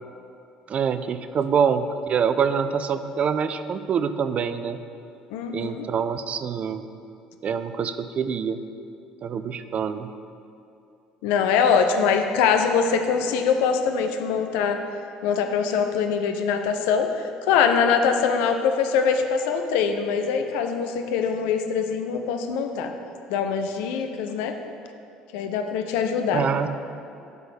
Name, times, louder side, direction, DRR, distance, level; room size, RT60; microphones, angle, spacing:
voice 1, 0.7-4.8 5.5-6.9 7.4-8.6 9.2-10.1 26.3-26.7, right 6 dB, 40° right, 11 dB, 0.4 m, -25 dB
voice 2, 5.3-5.9 11.2-14.8 15.2-22.9 23.3-24.5 25.3-26.7, left 6 dB, 65° left, 6 dB, 0.6 m, -23 dB
9.9 x 4.0 x 6.7 m, 2.6 s
hypercardioid pair, 60°, 3 cm